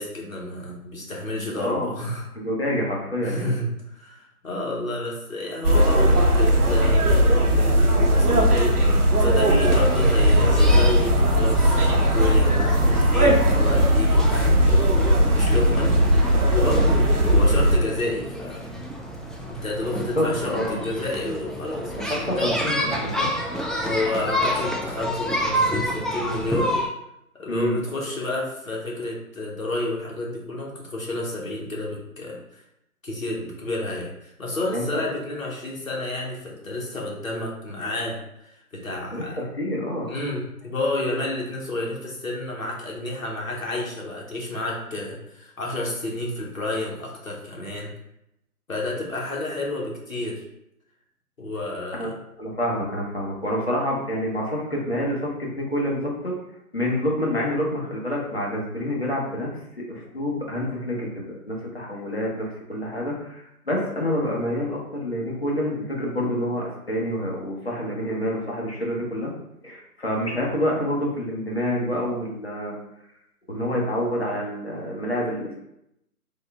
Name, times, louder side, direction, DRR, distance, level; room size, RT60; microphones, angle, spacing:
voice 1, 0.0-2.3 3.2-14.6 15.3-16.0 16.5-18.6 19.5-22.6 23.8-26.8 27.3-32.6 33.0-39.4 40.1-47.9 48.7-50.4 51.4-52.1, left 2 dB, 60° left, -2 dB, 1.1 m, -30 dB
voice 2, 1.3-2.0 2.3-3.5 20.1-20.8 22.0-23.3 27.5-27.8 34.7-35.0 39.1-39.3 39.6-40.1 51.9-52.1 52.4-56.4 56.7-59.5 59.9-69.3 69.6-72.8 73.5-75.6, equal, 40° left, -3 dB, 0.8 m, -27 dB
sound 1, 5.6-17.8, equal, 70° right, 0.9 m, -18 dB
sound 2, 9.6-26.9, equal, ahead, 0.3 m, -29 dB
3.6 x 2.2 x 3.5 m, 0.82 s
figure-of-eight pair, 175°, 46 cm